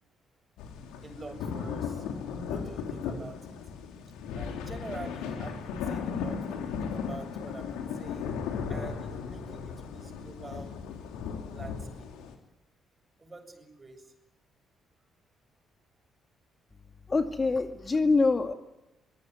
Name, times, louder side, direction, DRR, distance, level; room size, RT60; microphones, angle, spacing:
sound 1, 0.6-12.3, left 6 dB, 70° left, 3.5 m, -36 dB
voice 1, 1.0-2.1 2.5-3.6 4.3-8.4 8.7-10.8 11.5-12.1 13.2-14.1, right 3 dB, 30° right, 8 dB, 7.4 m, -46 dB
voice 2, 17.1-18.5, left 3 dB, 30° left, 6 dB, 2.2 m, -25 dB
24.0 x 22.0 x 9.6 m, 0.94 s
hypercardioid pair, 45°, 0 cm